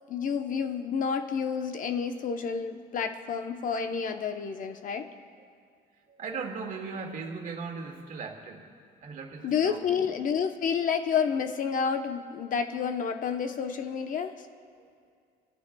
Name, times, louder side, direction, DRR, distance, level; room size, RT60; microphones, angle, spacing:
voice 1, 0.1-5.1 9.4-14.3, left 6 dB, 50° left, 7 dB, 0.9 m, -29 dB
voice 2, 6.1-8.7 9.0-10.0, right 4 dB, 50° right, 2 dB, 2.0 m, -38 dB
26.0 x 14.0 x 2.3 m, 2.2 s
cardioid pair, 110°, 17 cm